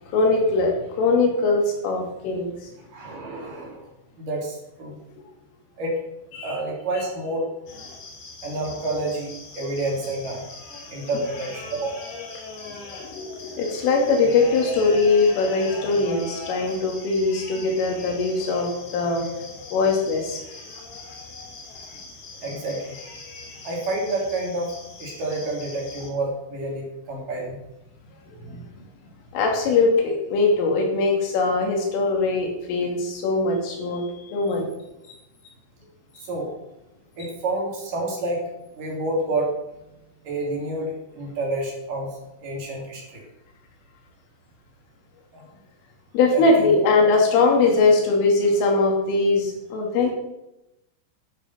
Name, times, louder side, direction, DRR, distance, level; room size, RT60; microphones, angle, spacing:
voice 1, 0.0-2.5 6.3-6.6 13.0-19.3 19.7-20.4 28.5-28.6 29.3-34.7 46.1-50.1, left 3 dB, 80° left, 1 dB, 5.2 m, -21 dB
voice 2, 2.9-3.9 4.2-5.0 5.8-6.0 6.4-7.5 8.4-10.4 10.9-12.1 19.0-19.1 22.4-23.0 23.6-24.7 25.0-27.6 36.2-36.5 37.2-38.4 38.7-39.5 40.2-43.2 45.3-45.4 46.3-46.7, right 2 dB, 45° right, -1 dB, 4.3 m, -29 dB
sound 1, 7.7-26.1, left 3 dB, 55° left, 4.3 m, -40 dB
11.5 x 11.0 x 5.8 m, 0.90 s
omnidirectional pair, 5.8 m